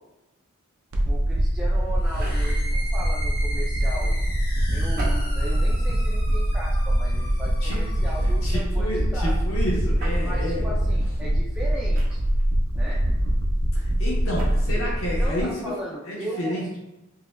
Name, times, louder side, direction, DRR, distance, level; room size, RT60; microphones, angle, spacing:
sound 1, 0.9-15.4, equal, 80° right, 0.6 m, -23 dB
voice 1, 1.1-4.2 4.7-9.4 10.3-12.2 12.7-13.0 15.0-16.8, right 1 dB, 10° right, -6 dB, 0.4 m, -37 dB
sound 2, 2.0-8.5, equal, 40° left, 1.4 m, -38 dB
sound 3, 2.0-2.7 4.9-5.7 6.3-6.5 7.7-8.1 10.0-10.2 11.9-12.5 14.2-14.6, right 2 dB, 45° right, 0.8 m, -40 dB
voice 2, 8.2-10.7 13.7-15.6 16.1-16.7, equal, 80° left, -5 dB, 1.1 m, -30 dB
4.8 x 2.4 x 2.3 m, 0.97 s
head